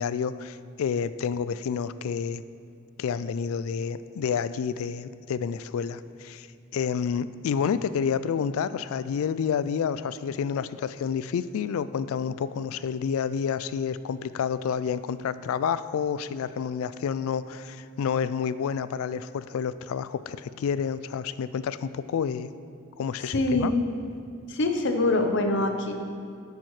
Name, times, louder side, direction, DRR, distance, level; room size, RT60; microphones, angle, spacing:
voice 1, 0.0-2.4 3.0-6.5 6.7-22.5 23.0-23.7, left 7 dB, 70° left, 15 dB, 0.3 m, -29 dB
voice 2, 23.2-23.7 24.5-25.9, left 2 dB, 55° left, 5 dB, 0.8 m, -24 dB
10.5 x 8.4 x 3.2 m, 2.4 s
head